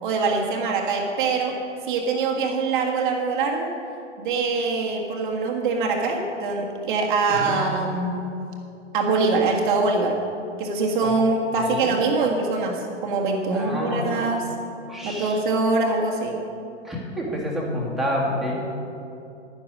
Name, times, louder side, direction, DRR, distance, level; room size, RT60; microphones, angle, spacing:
voice 1, 0.0-1.6 1.9-3.7 4.2-8.3 8.9-10.2 10.6-14.4 15.0-16.4, right 3 dB, 40° right, 0 dB, 1.7 m, -23 dB
voice 2, 7.3-7.6 11.0-11.1 11.6-11.9 13.5-14.3 14.8-15.4 16.8-18.5, left 1 dB, ahead, -4 dB, 2.0 m, -28 dB
11.5 x 9.9 x 6.2 m, 2.6 s
figure-of-eight pair, 110°, 37 cm